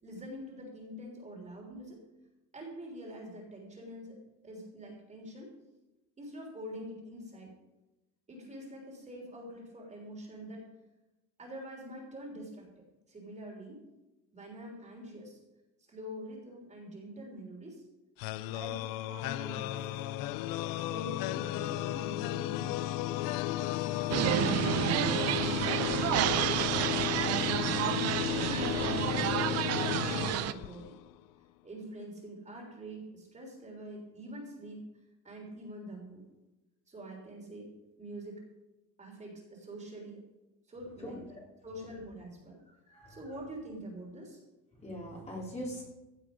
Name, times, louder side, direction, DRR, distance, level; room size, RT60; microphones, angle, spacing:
voice 1, 0.0-2.0 2.5-5.5 6.2-7.5 8.3-10.7 11.4-12.7 13.1-13.8 14.3-15.4 15.9-17.8 18.5-20.2 20.7-23.0 23.7-24.7 25.1-27.8 28.2-30.9 31.6-34.9 35.2-36.2 36.9-37.7 38.0-38.4 39.0-40.2 40.7-41.2 41.6-42.6 43.1-44.4, equal, 20° right, 0 dB, 3.4 m, -45 dB
sound 1, 18.2-31.1, left 14 dB, 75° left, 0.5 m, -34 dB
sound 2, 24.1-30.5, right 13 dB, 45° right, 0.6 m, -30 dB
voice 2, 42.7-43.2 44.8-45.8, equal, 20° left, -3 dB, 3.1 m, -42 dB
16.0 x 7.5 x 5.1 m, 1.0 s
cardioid pair, 135°, 34 cm